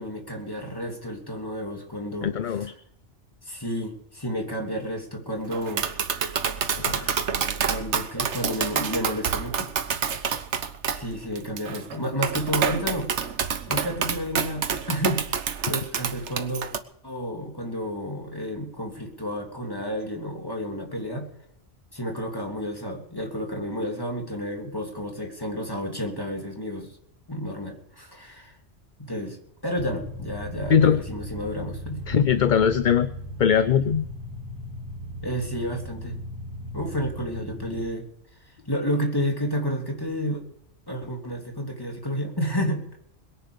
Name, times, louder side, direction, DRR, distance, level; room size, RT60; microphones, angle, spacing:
voice 1, 0.0-2.7 3.4-5.9 7.7-9.7 10.9-13.1 13.7-16.6 17.0-21.3 21.9-27.0 27.3-28.6 29.0-29.4 29.6-32.0 35.2-36.2 36.7-38.0 38.4-40.4 40.9-43.0, equal, 20° left, 1 dB, 3.2 m, -31 dB
voice 2, 2.2-2.7 6.8-7.2 30.7-31.0 32.1-33.1 33.4-34.1, left 7 dB, 50° left, 13 dB, 0.7 m, -21 dB
Tap, 5.5-16.8, right 7 dB, 75° right, 1.3 m, -28 dB
sound 1, 29.8-37.8, equal, 15° right, 3.2 m, -37 dB
21.5 x 10.0 x 5.2 m, 0.72 s
omnidirectional pair, 1.2 m